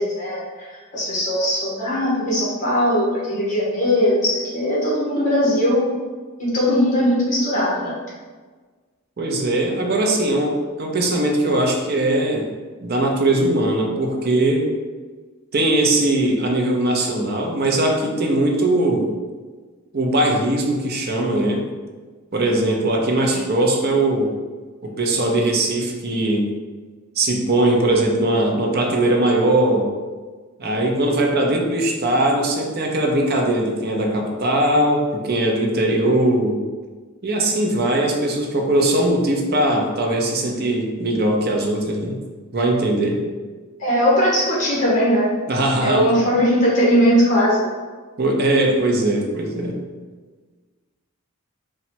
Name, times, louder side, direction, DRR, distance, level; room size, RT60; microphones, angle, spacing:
voice 1, 0.0-5.9 6.4-7.9 23.2-23.4 43.8-45.2 45.8-47.6, equal, 35° left, -5 dB, 1.3 m, -19 dB
voice 2, 9.2-12.5 12.8-14.7 15.5-19.1 19.9-21.7 22.3-24.3 24.8-26.5 27.2-29.9 30.6-36.6 37.2-42.2 42.5-43.2 45.5-46.2 48.2-49.8, right 1 dB, 45° right, 1 dB, 0.6 m, -20 dB
4.0 x 2.3 x 4.4 m, 1.4 s
head